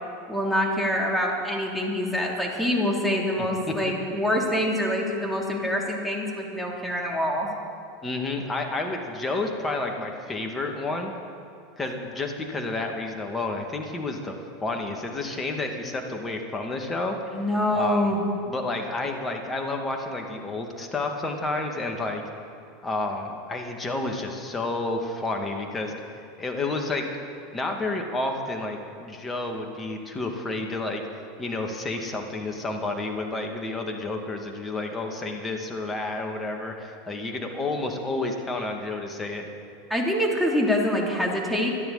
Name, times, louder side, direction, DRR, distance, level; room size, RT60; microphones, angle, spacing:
voice 1, 0.3-7.5 17.3-18.2 39.9-41.7, left 1 dB, ahead, -1 dB, 3.1 m, -25 dB
voice 2, 8.0-11.1 11.8-14.3 14.6-17.2 17.7-18.1 18.5-22.2 22.8-25.9 26.4-27.0 27.5-31.0 31.4-39.5, left 2 dB, 20° left, 3 dB, 2.3 m, -30 dB
27.0 x 9.9 x 4.2 m, 2.4 s
hypercardioid pair, 85°, 0 cm